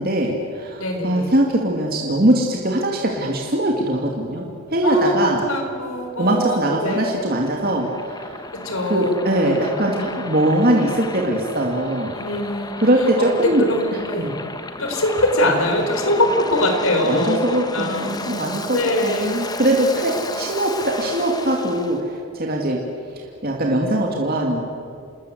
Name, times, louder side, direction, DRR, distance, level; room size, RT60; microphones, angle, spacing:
voice 1, 0.0-4.4 4.7-5.4 6.2-8.4 8.9-12.1 12.8-13.7 14.2-14.3 17.0-22.8 23.1-24.6, right 1 dB, 40° right, 0 dB, 2.6 m, -21 dB
voice 2, 0.8-1.3 4.8-5.2 5.4-7.0 8.5-9.2 12.1-12.7 13.4-14.3 14.8-17.4 17.7-18.1 18.7-19.3 20.3-20.4, left 1 dB, 70° left, 4 dB, 4.6 m, -22 dB
Waves surf, 6.2-22.0, left 2 dB, 15° left, 1.3 m, -33 dB
29.0 x 20.5 x 8.3 m, 2.5 s
head